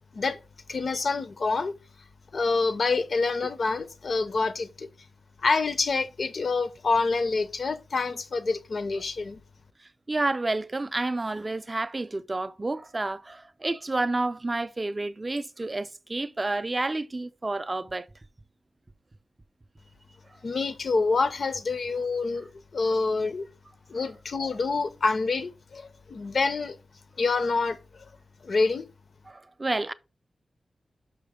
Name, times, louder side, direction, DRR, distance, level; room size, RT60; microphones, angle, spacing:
voice 1, 0.7-1.7 2.3-4.9 5.4-9.4 20.4-23.5 23.9-26.8 27.2-28.1 28.4-28.9, left 4 dB, 50° left, 0.5 m, -27 dB
voice 2, 10.1-18.1 29.3-29.9, right 2 dB, 20° right, 0.3 m, -30 dB
5.9 x 5.8 x 3.6 m
wide cardioid pair, 175°, 0 cm